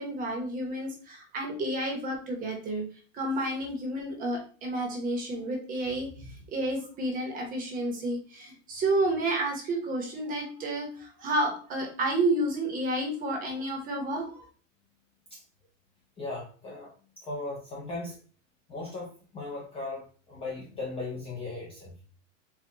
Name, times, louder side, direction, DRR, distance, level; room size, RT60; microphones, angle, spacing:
voice 1, 0.0-2.8 3.1-14.5, right 1 dB, 20° right, 2 dB, 0.9 m, -30 dB
voice 2, 16.2-16.9 17.2-18.2 18.7-21.9, left 2 dB, 15° left, -3 dB, 0.6 m, -37 dB
4.6 x 2.3 x 4.0 m, 0.40 s
supercardioid pair, 160°, 39 cm